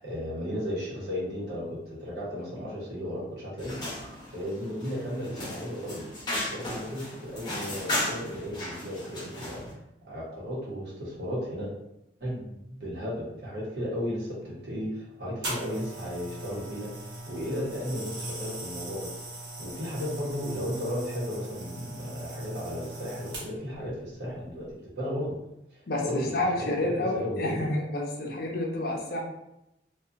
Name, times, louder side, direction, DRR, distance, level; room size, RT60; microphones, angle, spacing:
voice 1, 0.0-3.9 4.3-6.0 6.5-9.6 10.1-11.7 12.2-16.9 17.3-19.1 19.6-25.4 25.7-27.7, equal, 65° right, -6 dB, 1.0 m, -34 dB
sound 1, 3.6-9.7, left 1 dB, 25° left, 0.8 m, -35 dB
sound 2, 15.4-23.8 24.5-24.7, right 1 dB, 90° right, 1.0 m, -39 dB
voice 2, 25.9-29.2, left 1 dB, 55° left, -1 dB, 0.6 m, -29 dB
2.7 x 2.3 x 2.5 m, 0.87 s
head